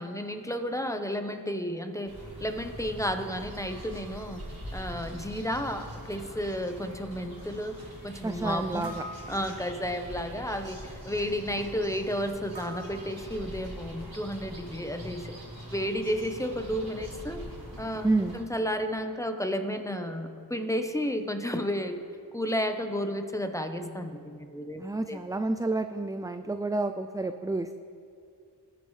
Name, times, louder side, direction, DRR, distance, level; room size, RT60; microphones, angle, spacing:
voice 1, 0.0-2.1 2.4-4.4 4.7-7.8 8.0-9.0 9.3-10.8 11.1-15.3 15.7-17.4 17.8-18.1 18.3-22.0 22.3-25.2, equal, 5° left, 6 dB, 0.9 m, -32 dB
sound 1, 2.0-18.4, equal, 60° right, 3.2 m, -43 dB
voice 2, 8.2-9.0 18.0-18.4 24.8-27.8, right 2 dB, 10° right, 8 dB, 0.3 m, -29 dB
sound 2, 8.8-10.0 12.5-13.8, equal, 75° right, 2.0 m, -44 dB
20.0 x 9.7 x 3.2 m, 2.4 s
wide cardioid pair, 50°, 41 cm